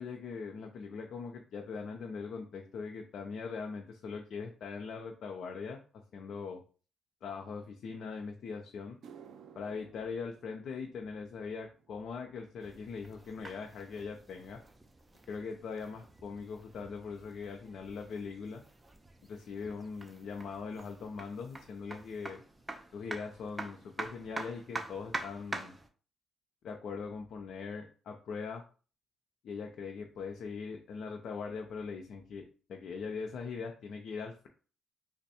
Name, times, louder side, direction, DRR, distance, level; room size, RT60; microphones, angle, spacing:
voice 1, 0.0-6.6 7.2-9.0 9.6-14.6 15.3-18.6 19.2-22.4 22.9-25.8 26.6-28.6 29.4-34.5, left 5 dB, 65° left, 2 dB, 0.5 m, -41 dB
sound 1, 8.8-17.3 17.6-18.1 18.8-18.9 21.7-21.8 23.4-23.5 23.7-23.9 24.2-24.7 25.1-25.2 25.8-25.9, right 7 dB, 70° right, 0.5 m, -60 dB
sound 2, 12.6-25.9, right 2 dB, 15° right, 0.5 m, -46 dB
3.4 x 2.1 x 4.2 m, 0.39 s
cardioid pair, 90°, 0 cm